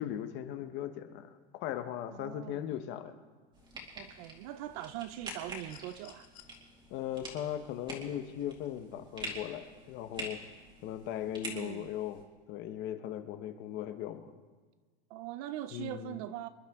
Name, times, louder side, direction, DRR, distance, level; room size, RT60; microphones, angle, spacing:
voice 1, 0.0-3.2 6.9-10.4 10.8-12.2 12.5-14.3 15.7-16.2, left 11 dB, 35° left, 1.0 m, -38 dB
voice 2, 2.1-2.6 4.0-6.3 11.5-11.9 15.1-16.5, right 13 dB, 40° right, 0.4 m, -41 dB
sound 1, 3.5-12.2, right 1 dB, 15° right, 2.3 m, -46 dB
sound 2, 5.5-6.6 8.1-8.2, left 12 dB, 85° left, 1.8 m, -57 dB
27.0 x 11.0 x 3.6 m
supercardioid pair, 165°, 31 cm